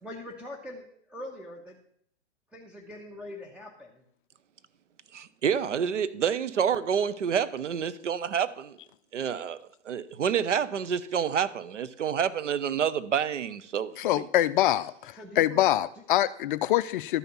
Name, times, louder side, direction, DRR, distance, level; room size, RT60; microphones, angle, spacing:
voice 1, 0.0-1.8 2.5-4.0 15.2-15.7, left 1 dB, 5° right, 1.2 m, -42 dB
voice 2, 5.1-8.8 9.1-9.6 9.9-14.2, right 8 dB, 85° right, 0.9 m, -28 dB
voice 3, 14.0-17.2, left 13 dB, 45° left, 0.5 m, -25 dB
12.5 x 5.6 x 7.2 m
hypercardioid pair, 120°, 35 cm